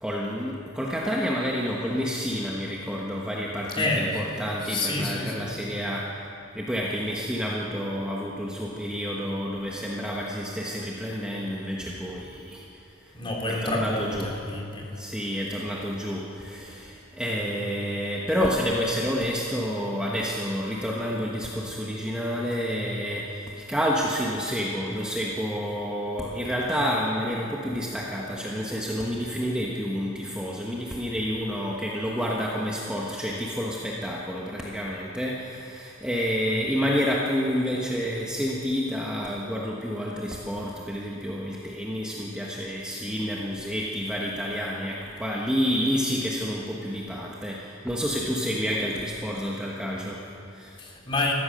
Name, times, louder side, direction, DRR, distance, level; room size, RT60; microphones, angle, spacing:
voice 1, 0.0-6.3 6.5-13.2 13.5-14.4 14.9-50.8, equal, 5° right, -3 dB, 1.2 m, -29 dB
voice 2, 3.8-4.1 4.6-5.5 13.1-14.9 50.8-51.3, left 2 dB, 25° left, -1 dB, 2.8 m, -28 dB
15.5 x 14.0 x 6.5 m, 2.8 s
head